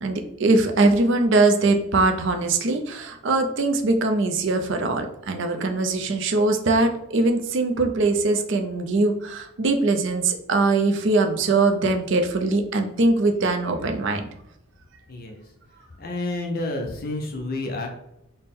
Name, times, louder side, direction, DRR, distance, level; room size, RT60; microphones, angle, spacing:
voice 1, 0.0-14.3, right 3 dB, 55° right, 5 dB, 0.5 m, -22 dB
voice 2, 15.1-15.4 16.0-17.9, left 2 dB, 40° left, 3 dB, 0.5 m, -29 dB
4.2 x 2.1 x 3.5 m, 0.82 s
head